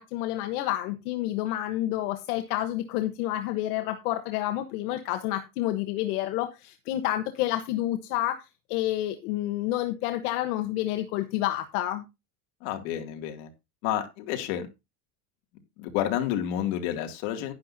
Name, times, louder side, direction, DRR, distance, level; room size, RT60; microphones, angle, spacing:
voice 1, 0.0-12.0, left 14 dB, 80° left, 7 dB, 1.3 m, -29 dB
voice 2, 12.6-13.5 13.8-14.7 15.8-17.5, left 11 dB, 65° left, 5 dB, 2.5 m, -30 dB
11.0 x 10.5 x 2.7 m, 0.24 s
cardioid pair, 165°, 44 cm